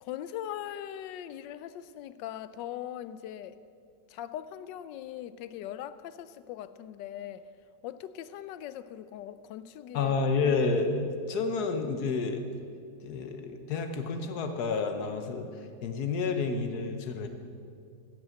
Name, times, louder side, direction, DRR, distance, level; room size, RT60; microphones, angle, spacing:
voice 1, 0.0-3.6 4.1-7.4 7.8-10.1, left 11 dB, 85° left, 14 dB, 1.2 m, -40 dB
voice 2, 9.9-12.4 13.0-15.5 15.8-17.3, left 4 dB, 65° left, 7 dB, 1.5 m, -29 dB
15.5 x 6.4 x 7.7 m, 2.3 s
omnidirectional pair, 1.9 m